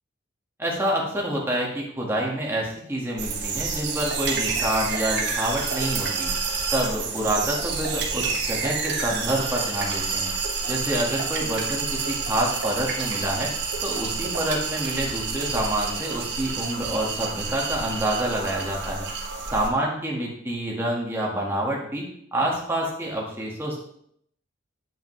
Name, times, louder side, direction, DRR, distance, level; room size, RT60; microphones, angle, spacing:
voice 1, 0.6-6.3 6.7-10.3 10.7-13.5 13.8-19.1 19.5-22.0 22.3-23.8, right 1 dB, 10° right, -3 dB, 1.7 m, -27 dB
sound 1, 3.2-19.7, right 4 dB, 55° right, 1.2 m, -29 dB
8.5 x 7.7 x 3.2 m, 0.71 s
head